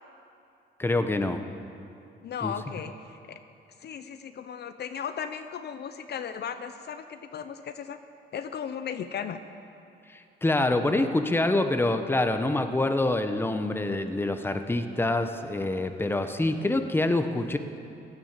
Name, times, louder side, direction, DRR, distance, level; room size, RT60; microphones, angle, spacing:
voice 1, 0.8-1.4 2.4-2.5 10.1-17.6, left 2 dB, 10° left, 7 dB, 1.0 m, -26 dB
voice 2, 2.2-3.4 3.8-8.0 8.3-9.4, left 7 dB, 55° left, 9 dB, 0.8 m, -36 dB
16.0 x 11.0 x 7.4 m, 2.6 s
cardioid pair, 90°, 20 cm